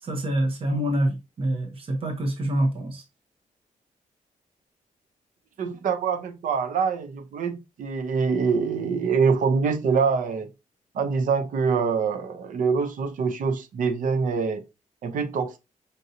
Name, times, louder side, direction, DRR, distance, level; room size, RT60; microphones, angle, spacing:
voice 1, 0.0-3.0, right 1 dB, 45° right, 0.9 m, -26 dB
voice 2, 5.6-10.5 10.9-14.6 15.0-15.6, right 5 dB, 80° right, 0.6 m, -25 dB
5.3 x 2.7 x 2.6 m
cardioid pair, 125°, 14 cm